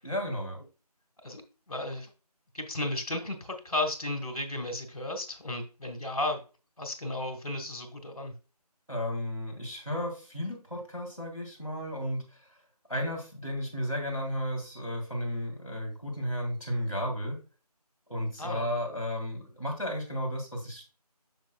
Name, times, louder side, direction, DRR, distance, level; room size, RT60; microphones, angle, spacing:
voice 1, 0.0-0.6 8.9-12.6 12.9-17.4 18.1-20.8, equal, 5° right, -16 dB, 0.9 m, -33 dB
voice 2, 1.7-2.1 2.5-6.4 6.8-8.3 18.4-19.0, left 2 dB, 60° left, 6 dB, 1.7 m, -34 dB
7.0 x 6.0 x 2.4 m, 0.34 s
figure-of-eight pair, 170°, 21 cm